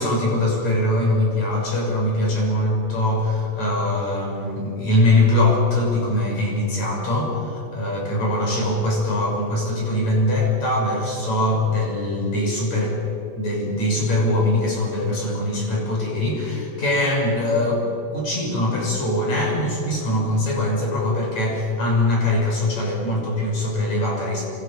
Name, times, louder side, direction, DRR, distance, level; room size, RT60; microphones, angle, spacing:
voice 1, 0.0-12.9 13.4-17.8 18.1-24.4, left 1 dB, 35° left, -2 dB, 7.7 m, -22 dB
29.0 x 26.0 x 6.8 m, 2.8 s
omnidirectional pair, 5.9 m